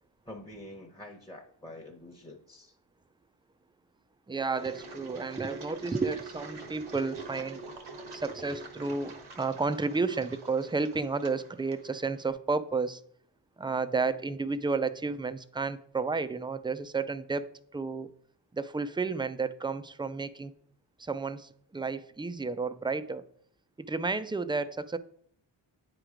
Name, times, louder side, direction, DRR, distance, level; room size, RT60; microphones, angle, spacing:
voice 1, 0.2-2.8, left 1 dB, 10° left, 0.9 m, -46 dB
voice 2, 4.3-7.7 8.1-13.0 13.6-17.5 17.7-18.1 18.5-20.5 21.0-23.2 23.8-25.0, right 4 dB, 10° right, 0.3 m, -32 dB
Engine, 4.5-12.3, right 2 dB, 85° right, 1.1 m, -46 dB
9.0 x 3.1 x 4.9 m
cardioid pair, 55°, 48 cm